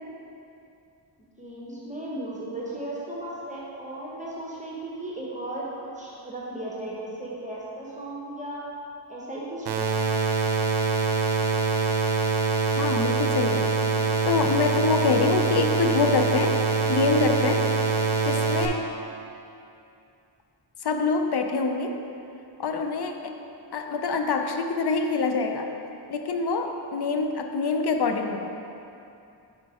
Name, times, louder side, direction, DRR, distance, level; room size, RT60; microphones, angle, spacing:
voice 1, 1.2-8.6 9.1-9.7, right 1 dB, 15° right, -6 dB, 1.1 m, -36 dB
sound 1, 9.7-18.7, right 4 dB, 60° right, 0.7 m, -24 dB
voice 2, 12.7-13.7 14.2-16.6 16.9-17.7 18.2-18.9 20.8-22.0 22.6-23.4 23.7-25.7 26.1-28.5, left 4 dB, 55° left, 5 dB, 0.6 m, -25 dB
5.1 x 5.1 x 4.8 m, 2.7 s
cardioid pair, 65°, 47 cm